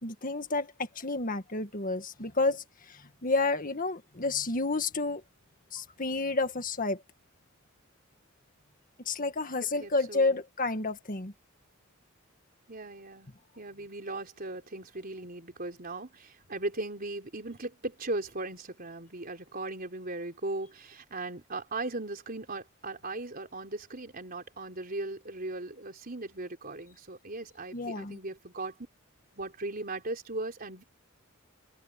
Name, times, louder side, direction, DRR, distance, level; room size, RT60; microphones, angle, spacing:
voice 1, 0.0-5.2 5.7-7.0 9.1-11.3 27.7-28.2, left 3 dB, 40° left, 1.9 m, -30 dB
voice 2, 9.6-10.4 12.7-13.3 13.6-28.7 29.3-30.8, right 2 dB, 45° right, 4.0 m, -38 dB
head